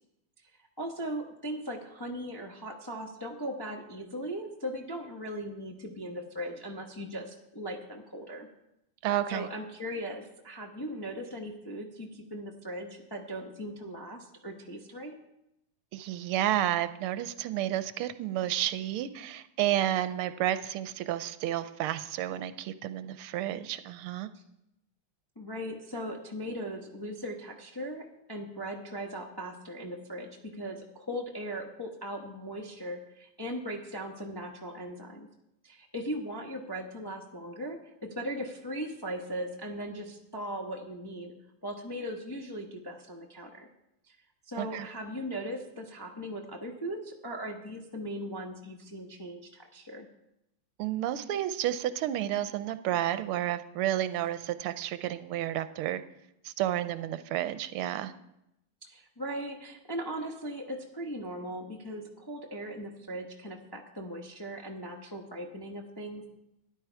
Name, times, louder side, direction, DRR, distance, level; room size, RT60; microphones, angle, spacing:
voice 1, 0.8-8.5 9.3-15.1 24.3-24.4 25.4-35.3 35.6-41.3 41.6-43.7 44.1-44.2 44.5-50.1 58.8-66.3, equal, 20° left, 0 dB, 0.5 m, -38 dB
voice 2, 9.0-9.5 15.9-24.3 44.6-44.9 50.8-56.0 56.4-58.1, right 12 dB, 85° right, 12 dB, 1.5 m, -31 dB
13.0 x 10.5 x 4.6 m, 0.85 s
omnidirectional pair, 2.4 m